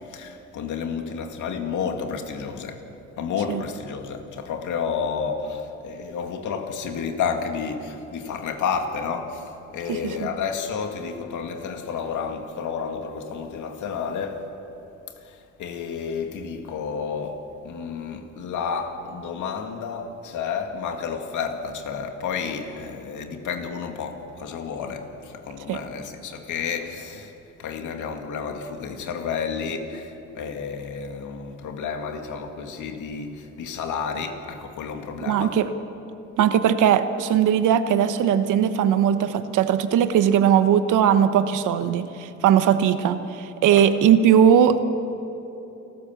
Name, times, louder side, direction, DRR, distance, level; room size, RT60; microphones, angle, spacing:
voice 1, 0.0-2.8 3.2-14.5 15.3-27.3 27.6-35.6 43.7-43.8, left 6 dB, 80° left, 2.3 m, -31 dB
voice 2, 9.9-10.3 25.7-25.8 35.2-35.7 36.4-44.9, right 9 dB, 90° right, 1.2 m, -19 dB
29.0 x 13.5 x 7.2 m
cardioid pair, 90°, 30 cm